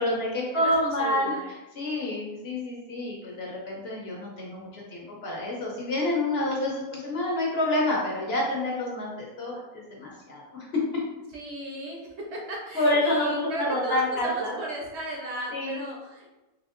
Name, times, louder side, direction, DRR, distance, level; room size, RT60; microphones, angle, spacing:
voice 1, 0.0-1.3 1.7-10.6 12.7-14.6 15.5-15.8, left 1 dB, 55° left, -3 dB, 0.8 m, -28 dB
voice 2, 0.5-1.4 11.3-16.3, right 2 dB, 65° right, -1 dB, 0.8 m, -36 dB
3.4 x 2.6 x 2.4 m, 1.0 s
omnidirectional pair, 1.4 m